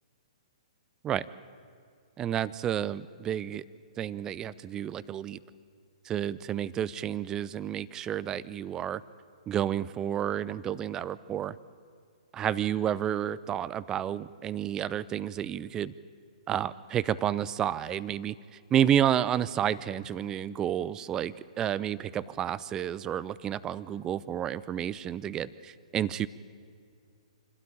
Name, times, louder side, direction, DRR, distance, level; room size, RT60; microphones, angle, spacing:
voice 1, 2.2-3.6 4.0-5.4 6.0-9.0 9.5-11.6 12.3-15.9 16.5-18.3 18.7-26.3, right 10 dB, 15° right, 18 dB, 0.5 m, -30 dB
27.0 x 13.0 x 8.7 m, 2.2 s
figure-of-eight pair, 115°, 3 cm